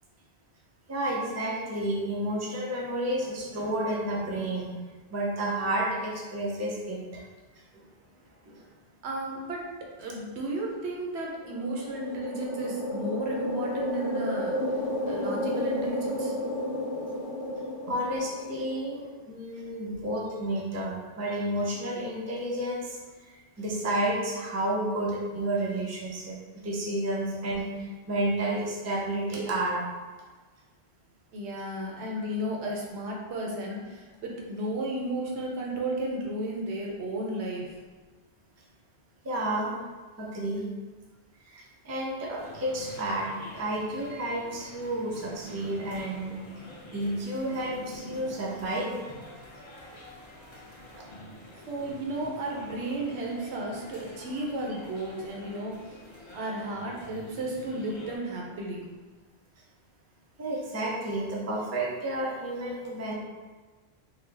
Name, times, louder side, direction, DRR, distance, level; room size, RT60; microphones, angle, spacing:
voice 1, 0.9-4.7 5.1-7.2 7.7-7.8 8.4-8.6 17.9-23.0 23.6-26.4 26.6-29.8 39.2-39.7 40.2-40.7 41.4-46.4 46.9-49.0 51.0-51.1 60.4-63.1, right 1 dB, 25° right, -3 dB, 0.3 m, -31 dB
voice 2, 9.0-9.6 10.0-14.5 15.0-16.3 19.9-20.0 31.3-37.7 51.7-56.0 56.3-58.9, right 1 dB, 85° right, -1 dB, 1.0 m, -33 dB
sound 1, 11.3-19.0, left 1 dB, 80° left, 0.9 m, -32 dB
sound 2, 42.4-58.2, left 1 dB, 40° left, 0.5 m, -47 dB
3.7 x 2.0 x 3.3 m, 1.3 s
omnidirectional pair, 1.1 m